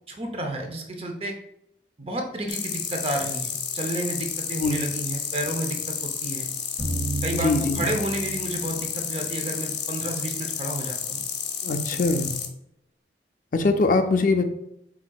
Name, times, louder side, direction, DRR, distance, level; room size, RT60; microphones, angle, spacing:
voice 1, 0.1-1.3 2.0-6.5 7.2-11.2 11.9-12.0, right 1 dB, 35° right, 3 dB, 0.6 m, -31 dB
sound 1, 2.5-12.5, left 8 dB, 85° left, 0.7 m, -31 dB
sound 2, 6.8-9.9, right 2 dB, 90° right, 1.6 m, -33 dB
voice 2, 7.3-7.9 11.6-12.3 13.5-14.4, left 3 dB, 45° left, 7 dB, 0.4 m, -22 dB
6.0 x 3.6 x 2.3 m, 0.78 s
head